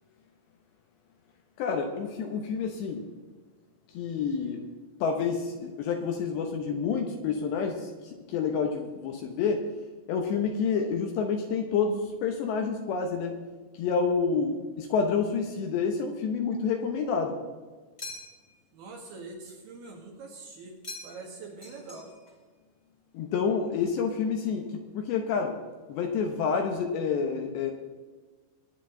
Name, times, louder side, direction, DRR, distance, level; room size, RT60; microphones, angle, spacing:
voice 1, 1.6-3.0 3.9-4.6 5.0-9.6 10.1-13.4 13.7-17.4 23.1-24.7 24.9-25.6 25.9-27.7, left 5 dB, 75° left, 4 dB, 2.8 m, -28 dB
sound 1, 18.0-18.6 20.8-21.3 21.6-22.4, left 2 dB, 25° left, 1.3 m, -43 dB
voice 2, 18.7-20.8 21.0-22.1, right 3 dB, 60° right, 1 dB, 3.1 m, -44 dB
23.0 x 10.0 x 3.8 m, 1.4 s
omnidirectional pair, 5.9 m